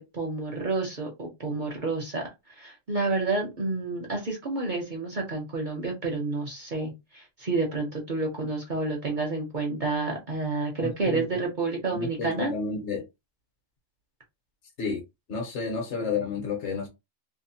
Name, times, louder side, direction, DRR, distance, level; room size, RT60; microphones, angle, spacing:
voice 1, 0.0-2.2 2.6-12.5, right 3 dB, 50° right, 0.7 m, -29 dB
voice 2, 10.8-11.3 11.9-13.0 14.8-15.0 15.3-16.9, left 5 dB, 65° left, 1.1 m, -31 dB
2.8 x 2.1 x 2.7 m
omnidirectional pair, 1.3 m